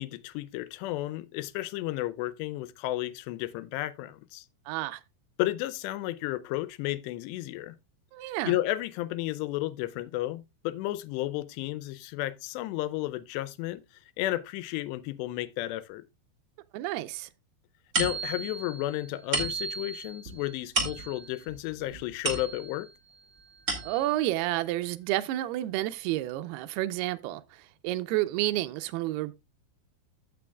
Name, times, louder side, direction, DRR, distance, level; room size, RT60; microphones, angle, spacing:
voice 1, 0.0-4.5 5.4-7.8 8.5-13.8 14.2-16.0 18.0-22.9, left 16 dB, 90° left, 2.8 m, -33 dB
voice 2, 4.7-5.0 8.1-8.5 16.7-17.3 23.8-29.3, right 15 dB, 80° right, 2.5 m, -30 dB
sound 1, 17.9-22.9 23.4-24.3, right 3 dB, 40° right, 1.2 m, -33 dB
14.5 x 6.0 x 2.3 m
omnidirectional pair, 4.8 m